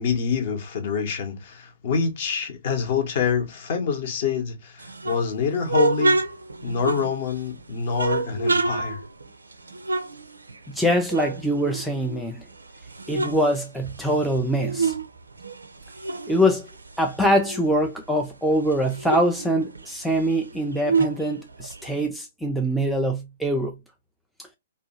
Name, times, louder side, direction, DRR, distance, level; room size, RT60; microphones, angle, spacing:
voice 1, 0.0-6.2 6.6-9.0, left 6 dB, 45° left, 0.8 m, -26 dB
sound 1, 4.8-7.5 7.9-10.8 11.1-12.4 12.8-15.1 15.4-17.9 18.3-18.4 18.6-22.1, right 3 dB, 75° right, 0.4 m, -28 dB
voice 2, 10.7-12.4 13.1-14.9 16.3-16.7 17.0-23.8 24.4-24.5, equal, ahead, 0.3 m, -23 dB
2.7 x 2.2 x 2.6 m
figure-of-eight pair, 120°, 0 cm